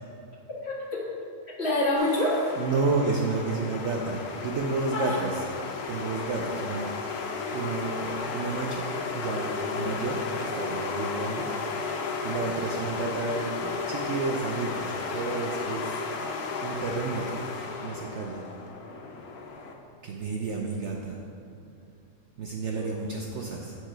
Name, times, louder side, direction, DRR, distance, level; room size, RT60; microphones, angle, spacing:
voice 1, 0.5-1.2 1.6-2.5 4.9-5.2 9.7-9.8 22.7-22.9, left 1 dB, 45° left, -6 dB, 1.7 m, -27 dB
sound 1, 2.0-19.7, left 4 dB, 80° left, 1.2 m, -34 dB
voice 2, 2.6-5.3 5.9-6.9 7.5-8.9 9.1-11.5 12.2-16.0 16.6-17.4 17.8-18.4 20.0-21.2 22.4-23.8, right 4 dB, 65° right, 0 dB, 0.7 m, -31 dB
7.7 x 4.7 x 4.4 m, 2.6 s
omnidirectional pair, 1.6 m